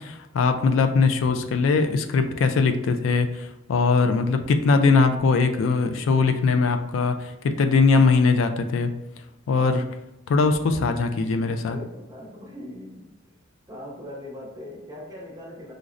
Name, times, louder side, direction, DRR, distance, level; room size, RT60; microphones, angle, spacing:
voice 1, 0.0-8.9 9.5-9.8 10.3-11.8, left 4 dB, 90° left, 8 dB, 0.3 m, -21 dB
voice 2, 11.7-13.1 13.7-15.7, left 1 dB, 20° right, -2 dB, 0.7 m, -40 dB
5.0 x 2.0 x 2.4 m, 0.93 s
head